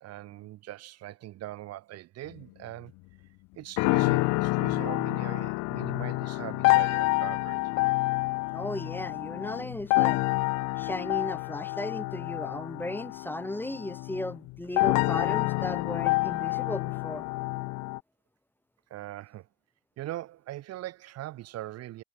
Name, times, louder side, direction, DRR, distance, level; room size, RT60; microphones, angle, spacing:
voice 1, 0.0-2.9 3.5-7.6 18.9-19.5 20.0-22.0, right 15 dB, 60° right, 7.7 m, -41 dB
sound 1, 3.8-18.0, left 25 dB, 65° left, 1.9 m, -28 dB
voice 2, 8.5-10.2 10.8-17.2, left 1 dB, 5° left, 3.9 m, -36 dB
hypercardioid pair, 65°, 29 cm